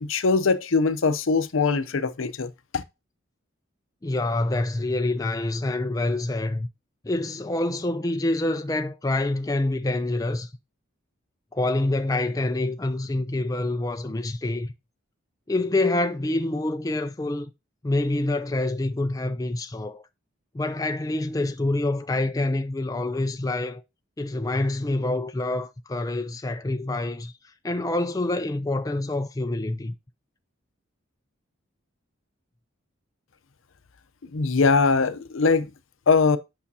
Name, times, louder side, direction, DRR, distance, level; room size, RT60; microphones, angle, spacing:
voice 1, 0.0-2.8 34.3-35.7 36.1-36.4, left 4 dB, 75° left, 0.7 m, -22 dB
voice 2, 4.0-6.7 7.0-10.5 11.5-14.7 15.5-17.5 17.8-20.0 20.5-23.8 24.2-27.3 27.6-29.9, left 2 dB, 15° left, 0.4 m, -26 dB
8.4 x 5.7 x 2.7 m
head